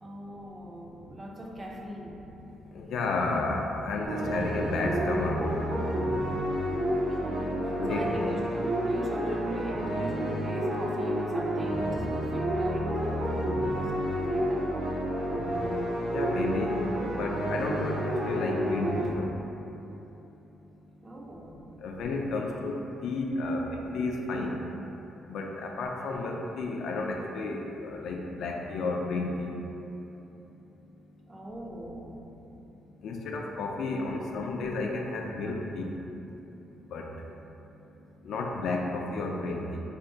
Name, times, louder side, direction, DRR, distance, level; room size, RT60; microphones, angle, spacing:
voice 1, 0.0-2.2 7.0-14.7 21.0-21.6 23.4-23.8 31.3-32.2 34.2-34.3, right 1 dB, 25° right, -1 dB, 0.3 m, -40 dB
voice 2, 2.7-5.4 7.7-8.3 16.1-18.0 18.2-19.3 21.8-22.7 23.0-23.6 23.9-24.5 25.3-29.5 33.0-35.9 36.9-37.1 38.2-39.8, left 3 dB, 75° left, 1 dB, 0.3 m, -32 dB
sound 1, 4.1-19.1, equal, 85° right, 0.5 m, -30 dB
2.4 x 2.2 x 3.6 m, 2.9 s
cardioid pair, 90°, 0 cm